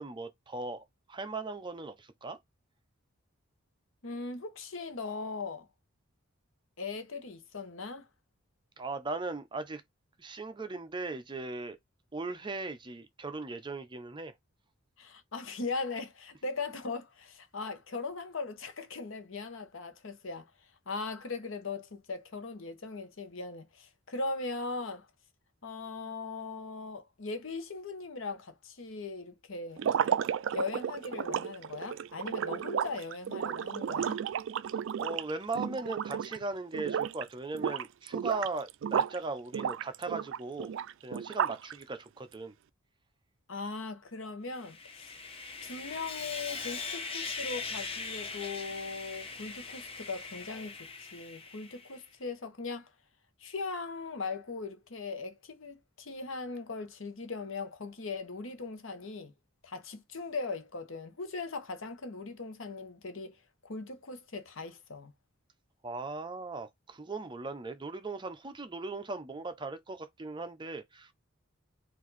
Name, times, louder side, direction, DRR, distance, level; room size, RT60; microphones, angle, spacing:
voice 1, 0.0-2.4 8.8-9.8 10.2-11.8 12.1-14.3 35.0-40.7 41.0-42.5 65.8-71.1, right 3 dB, 20° right, 0.6 m, -38 dB
voice 2, 4.0-5.7 6.8-8.0 15.0-20.5 20.9-25.1 25.6-29.9 30.5-34.2 43.5-45.2 45.6-52.9 53.4-59.3 59.6-63.4 63.6-65.1, left 3 dB, 65° left, 0.9 m, -39 dB
sound 1, 29.8-36.4 36.7-37.2 37.5-39.2 39.5-41.7, right 8 dB, 60° right, 0.3 m, -33 dB
Sawing, 44.5-52.0, left 4 dB, 30° left, 0.8 m, -41 dB
4.5 x 2.6 x 4.0 m
head